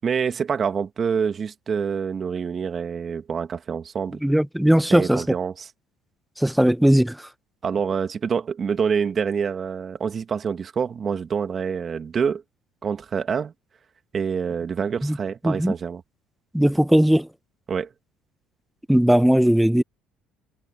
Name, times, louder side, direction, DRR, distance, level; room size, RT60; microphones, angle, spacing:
voice 1, 0.0-4.2 4.9-5.7 7.6-12.4 12.8-13.5 14.1-16.0 17.7-17.9, right 6 dB, 40° right, 2.1 m, -26 dB
voice 2, 4.2-5.2 6.4-7.2 15.0-15.2 15.4-15.7 16.5-17.3 18.9-19.8, equal, 5° right, 1.0 m, -18 dB
supercardioid pair, 80°, 0 cm